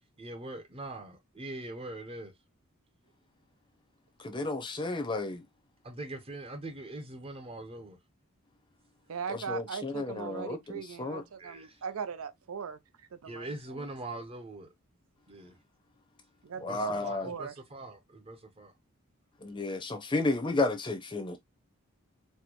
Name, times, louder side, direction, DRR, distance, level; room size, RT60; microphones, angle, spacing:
voice 1, 0.2-2.3 5.8-8.0 11.4-11.7 13.2-14.7 15.3-15.5 16.6-18.7, right 2 dB, 25° right, 0.7 m, -42 dB
voice 2, 4.2-5.4 9.3-10.6 11.0-11.2 16.6-17.3 19.4-21.4, left 2 dB, 20° left, 0.6 m, -32 dB
voice 3, 9.1-12.8 13.2-13.9 16.4-17.5, right 6 dB, 75° right, 0.5 m, -40 dB
4.2 x 2.1 x 2.9 m
head